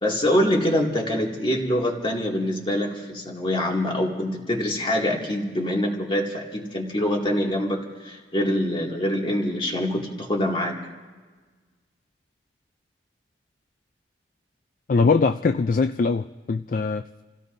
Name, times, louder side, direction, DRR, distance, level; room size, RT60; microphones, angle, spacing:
voice 1, 0.0-10.8, left 1 dB, 30° left, 0 dB, 2.3 m, -25 dB
voice 2, 14.9-17.2, left 4 dB, 50° left, 10 dB, 0.4 m, -22 dB
30.0 x 16.5 x 2.7 m, 1.4 s
head